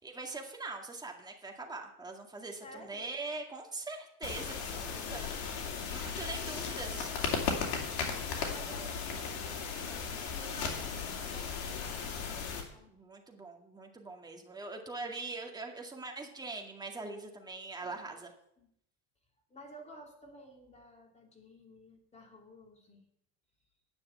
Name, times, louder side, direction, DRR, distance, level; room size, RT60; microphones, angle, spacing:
voice 1, 0.0-5.3 5.9-7.1 12.9-18.3, right 3 dB, 10° right, 1 dB, 2.1 m, -42 dB
voice 2, 2.6-3.1 8.3-12.9 17.8-18.1 18.6-18.7 19.5-23.1, equal, 20° left, 1 dB, 2.9 m, -53 dB
sound 1, 4.2-12.6, left 6 dB, 80° left, 2.5 m, -36 dB
9.8 x 6.9 x 8.2 m, 0.76 s
supercardioid pair, 120°, 35 cm